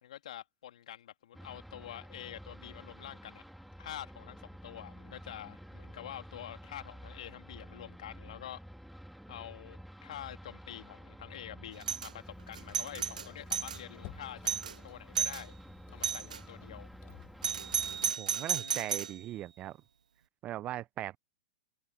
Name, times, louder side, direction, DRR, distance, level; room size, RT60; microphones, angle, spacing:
voice 1, 0.0-3.4 3.8-8.6 9.3-14.5 14.8-15.5 15.9-16.9 18.6-18.9, left 11 dB, 65° left, 2.8 m, -47 dB
sound 1, 1.3-18.1, equal, ahead, 3.2 m, -50 dB
Doorbell, 11.8-12.1 12.5-13.8 14.2-14.3 14.5-14.8 15.2-15.4 16.0-16.4 17.4-19.2, right 7 dB, 80° right, 0.4 m, -33 dB
Squeak, 12.4-17.6, left 38 dB, 45° left, 4.8 m, -56 dB
voice 2, 18.2-19.8 20.4-21.2, right 14 dB, 30° right, 0.7 m, -39 dB
hypercardioid pair, 105°, 4 cm